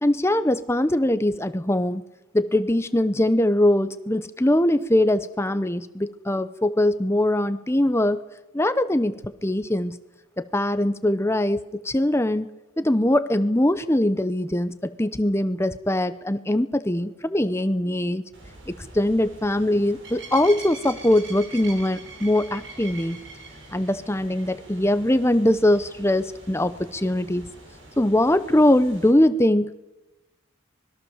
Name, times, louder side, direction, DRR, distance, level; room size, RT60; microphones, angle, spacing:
voice 1, 0.0-2.0 2.3-8.2 8.5-9.2 9.4-10.0 10.4-12.5 12.8-18.2 18.7-23.2 23.7-27.5 28.0-29.8, left 1 dB, 10° left, 12 dB, 0.7 m, -22 dB
sound 1, 18.3-29.1, right 3 dB, 60° right, 6.2 m, -43 dB
25.0 x 21.0 x 7.2 m, 0.97 s
head